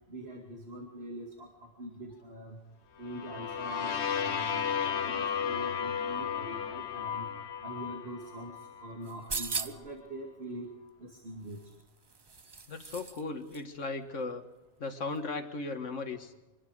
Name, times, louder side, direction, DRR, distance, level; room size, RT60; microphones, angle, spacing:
voice 1, 0.1-1.5 1.8-2.6 3.0-4.6 5.0-7.3 7.6-8.5 8.8-10.7 11.0-11.6, right 1 dB, 55° right, 0 dB, 2.6 m, -43 dB
sound 1, 3.0-8.9, left 7 dB, 65° left, 1.2 m, -34 dB
sound 2, 9.0-10.0 11.5-13.2 13.5-13.6, right 4 dB, 30° right, 0.5 m, -38 dB
voice 2, 12.7-14.4 14.8-16.3, left 3 dB, 85° left, 7 dB, 2.0 m, -37 dB
26.0 x 20.0 x 5.0 m, 1.0 s
omnidirectional pair, 1.2 m